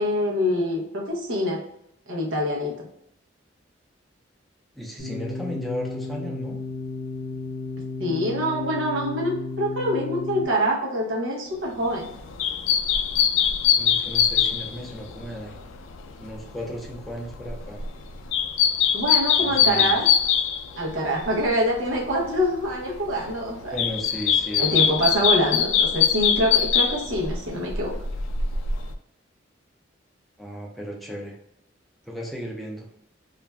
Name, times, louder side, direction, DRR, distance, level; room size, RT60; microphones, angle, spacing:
voice 1, 0.0-1.6 2.1-2.7 8.0-12.1 18.9-20.1 20.7-23.8 24.6-27.9, equal, 90° right, -2 dB, 0.7 m, -25 dB
voice 2, 4.8-6.6 13.8-15.6 16.2-17.8 19.4-19.9 23.7-25.0 30.4-31.4 32.0-32.9, equal, ahead, -2 dB, 0.5 m, -35 dB
sound 1, 5.0-10.4, left 3 dB, 50° left, 0.6 m, -33 dB
sound 2, 11.8-21.5 21.7-22.7 23.0-28.9, left 8 dB, 85° left, 0.3 m, -23 dB
2.5 x 2.2 x 3.2 m, 0.79 s
head